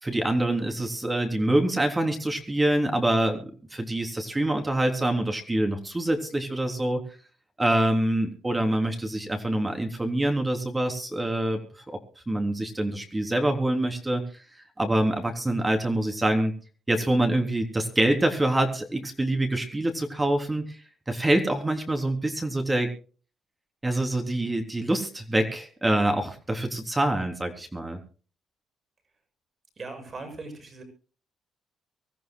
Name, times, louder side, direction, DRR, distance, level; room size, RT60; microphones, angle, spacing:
voice 1, 0.0-7.0 7.6-11.6 11.9-12.0 12.3-14.2 14.8-16.5 16.9-20.8 21.1-22.9 23.8-28.0, right 1 dB, 15° right, 4 dB, 3.5 m, -25 dB
voice 2, 29.8-30.8, right 3 dB, 40° right, 7 dB, 6.8 m, -39 dB
24.5 x 14.0 x 2.3 m, 0.38 s
cardioid pair, 90°, 0 cm